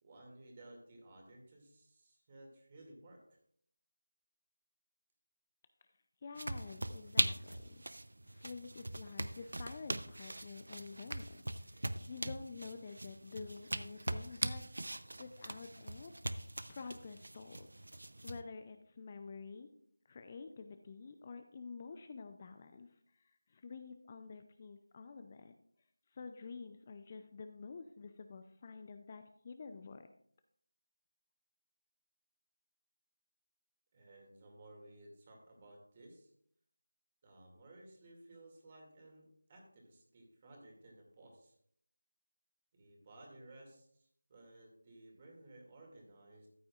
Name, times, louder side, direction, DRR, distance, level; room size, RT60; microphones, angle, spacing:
voice 1, 0.0-3.4 33.9-36.3 37.2-41.6 42.7-46.5, right 1 dB, 25° right, 0 dB, 2.3 m, -57 dB
voice 2, 6.2-7.8 8.2-14.6 15.2-16.1 16.7-17.9 18.2-19.7 20.1-25.5 26.1-30.1, left 4 dB, 25° left, 8 dB, 0.5 m, -49 dB
sound 1, 6.4-18.4, right 1 dB, 70° right, 0.6 m, -41 dB
13.5 x 8.5 x 2.4 m, 0.67 s
figure-of-eight pair, 170°, 0 cm